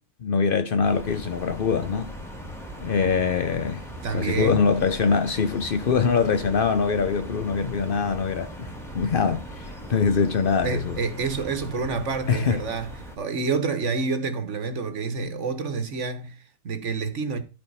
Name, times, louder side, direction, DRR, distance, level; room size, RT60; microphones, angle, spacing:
voice 1, 0.2-2.1 2.8-3.9 4.1-11.0 12.3-12.6, left 5 dB, 70° left, 0.5 m, -23 dB
sound 1, 0.8-13.2, right 1 dB, ahead, 1.7 m, -39 dB
voice 2, 4.0-4.7 10.6-17.4, right 4 dB, 45° right, 1.5 m, -28 dB
13.0 x 4.4 x 5.5 m
omnidirectional pair, 1.9 m